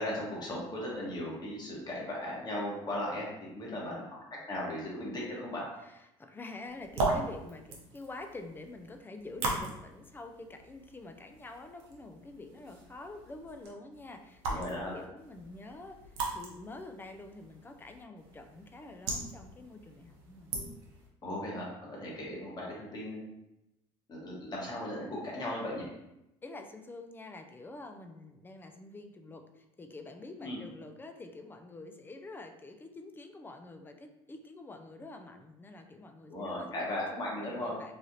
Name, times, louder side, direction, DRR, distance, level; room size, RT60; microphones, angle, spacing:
voice 1, 0.0-3.3 3.5-3.9 4.5-5.6 14.5-14.9 21.2-23.2 24.1-25.9 30.4-30.6 36.3-37.8, left 1 dB, 35° left, -4 dB, 1.3 m, -37 dB
voice 2, 3.7-4.1 5.8-20.7 22.2-22.3 26.4-36.7 37.4-37.9, left 2 dB, 15° left, 5 dB, 0.4 m, -47 dB
sound 1, 6.7-21.1, right 3 dB, 90° right, 0.7 m, -39 dB
3.2 x 2.4 x 2.7 m, 0.89 s
supercardioid pair, 85°, 12 cm